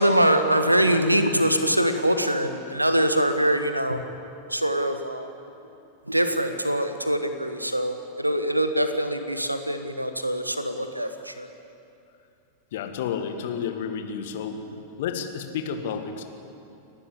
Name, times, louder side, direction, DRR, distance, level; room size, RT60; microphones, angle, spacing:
voice 1, 0.0-4.0 4.5-5.3 6.1-11.5, right 1 dB, 85° right, 8 dB, 1.5 m, -23 dB
voice 2, 12.7-14.6 15.0-16.2, left 7 dB, 55° left, 6 dB, 2.0 m, -31 dB
30.0 x 12.0 x 8.7 m, 2.6 s
figure-of-eight pair, 90°, 0 cm